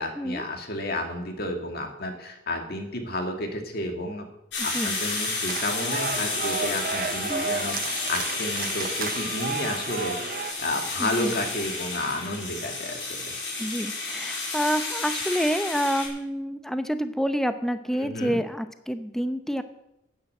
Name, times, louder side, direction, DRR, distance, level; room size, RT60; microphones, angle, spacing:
voice 1, 0.0-4.3 4.6-10.2 10.6-13.2 17.9-18.4, left 1 dB, 55° left, 4 dB, 2.1 m, -31 dB
sound 1, 4.5-16.1, left 3 dB, 70° left, 5.7 m, -31 dB
sound 2, 5.5-10.5, right 5 dB, 45° right, 0.7 m, -32 dB
voice 2, 11.0-11.3 13.6-19.6, equal, ahead, 10 dB, 0.7 m, -28 dB
10.5 x 9.6 x 7.9 m, 0.85 s
head